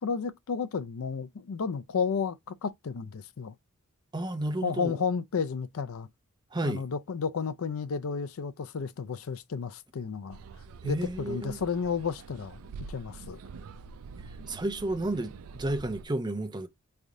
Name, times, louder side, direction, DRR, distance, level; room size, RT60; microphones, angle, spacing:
voice 1, 0.0-3.5 4.6-6.1 6.6-10.4 10.8-12.6 12.9-13.4, left 5 dB, 70° left, 0.5 m, -32 dB
voice 2, 4.1-5.0 6.5-6.9 10.8-11.6 14.5-16.7, right 1 dB, 20° right, 0.6 m, -31 dB
sound 1, 10.3-16.1, right 4 dB, 75° right, 0.4 m, -46 dB
3.6 x 3.3 x 2.6 m
head